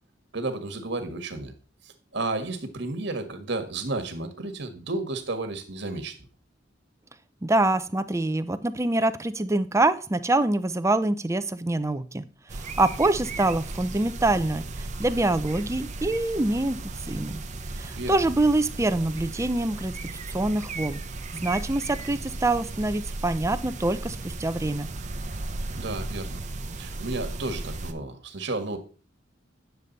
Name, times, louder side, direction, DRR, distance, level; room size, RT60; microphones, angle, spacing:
voice 1, 0.3-1.5 1.8-6.2 17.9-18.2 25.7-26.4 26.8-28.8, right 2 dB, 65° right, 7 dB, 1.7 m, -32 dB
voice 2, 7.4-12.2 12.5-16.8 17.1-17.4 17.8-19.9 20.3-21.0 21.3-24.9, right 2 dB, 15° right, 11 dB, 0.6 m, -25 dB
sound 1, 12.5-27.9, right 2 dB, 40° right, 0.9 m, -36 dB
9.7 x 6.8 x 4.1 m, 0.37 s
head